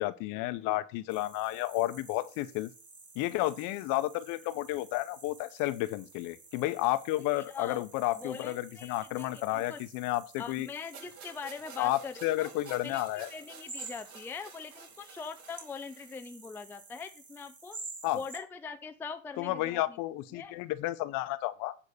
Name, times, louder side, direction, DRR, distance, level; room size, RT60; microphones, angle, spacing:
voice 1, 0.0-2.7 3.1-10.7 11.8-13.3 18.0-18.2 19.4-21.7, left 16 dB, 50° left, 1.0 m, -32 dB
sound 1, 1.1-18.4, right 3 dB, 20° right, 2.3 m, -51 dB
voice 2, 7.4-7.8 8.1-9.8 10.4-12.5 12.8-13.0 13.3-17.8 18.1-20.0 20.3-20.5, left 5 dB, 5° left, 0.5 m, -42 dB
sound 2, 10.9-16.3, right 6 dB, 40° right, 5.9 m, -51 dB
9.9 x 3.8 x 6.7 m
supercardioid pair, 115°, 42 cm